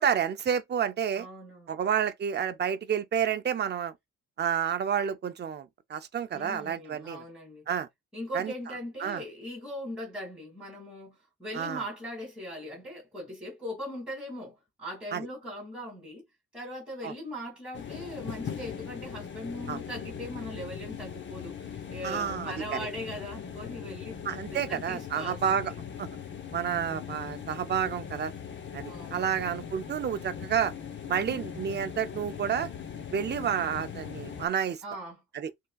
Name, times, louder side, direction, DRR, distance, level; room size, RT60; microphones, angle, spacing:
voice 1, 0.0-1.3 1.7-3.9 4.4-7.2 7.7-7.9 8.3-8.5 9.0-9.2 11.5-11.8 15.1-15.3 17.0-17.1 19.7-19.8 22.0-22.9 24.2-25.7 26.0-26.1 26.5-28.3 28.7-30.7 31.1-32.7 33.1-34.8 35.3-35.5, right 8 dB, 35° right, 0.5 m, -30 dB
voice 2, 1.1-1.8 6.3-7.6 8.1-16.2 16.5-21.5 21.9-24.2 24.5-25.4 28.9-29.9 31.2-31.5 34.8-35.2, equal, 5° right, 2.4 m, -40 dB
sound 1, 17.7-34.5, left 8 dB, 35° left, 0.7 m, -40 dB
5.3 x 3.6 x 2.3 m
wide cardioid pair, 175°, 31 cm